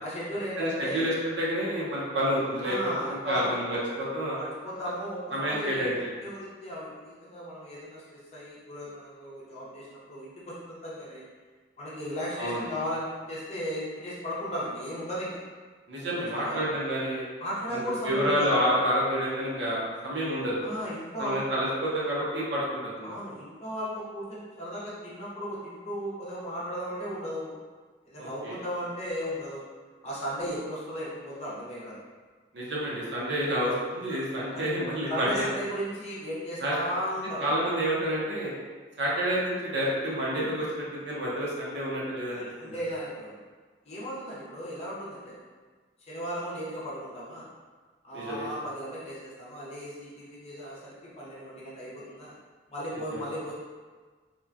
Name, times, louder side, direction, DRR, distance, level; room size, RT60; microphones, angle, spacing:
voice 1, 0.0-1.1 2.6-3.5 4.4-11.2 11.8-15.4 16.0-16.6 17.4-18.6 20.6-21.4 23.0-27.6 28.1-29.7 30.0-32.0 34.1-34.3 35.1-37.6 42.3-43.4 43.9-45.4 46.1-47.5 48.0-52.3 52.7-53.5, equal, 35° left, -7 dB, 0.7 m, -36 dB
voice 2, 0.6-4.4 5.3-6.1 12.4-12.6 15.9-17.3 17.7-20.6 21.2-23.1 28.2-28.6 32.5-35.5 36.6-36.8 37.4-38.5 39.0-42.4 42.7-42.8 48.1-48.5 53.1-53.2, equal, 75° right, -6 dB, 0.8 m, -29 dB
3.0 x 2.2 x 2.4 m, 1.4 s
head